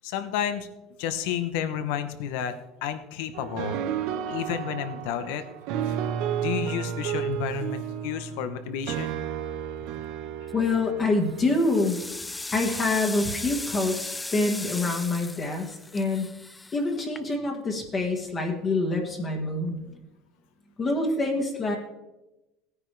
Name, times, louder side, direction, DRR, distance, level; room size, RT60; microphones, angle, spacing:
voice 1, 0.0-0.7 1.0-2.5 2.8-3.8 4.3-5.4 5.9-6.0 6.4-9.2, left 9 dB, 75° left, 10 dB, 1.0 m, -31 dB
sound 1, 3.3-11.9, right 9 dB, 65° right, 1.1 m, -32 dB
voice 2, 10.5-12.0 12.5-16.3 16.7-19.8 20.8-21.8, left 2 dB, 25° left, 1 dB, 1.6 m, -26 dB
sound 2, 10.5-10.9 11.4-17.6, left 2 dB, 10° left, 0.3 m, -37 dB
17.5 x 9.9 x 3.3 m, 0.99 s
cardioid pair, 150°, 0 cm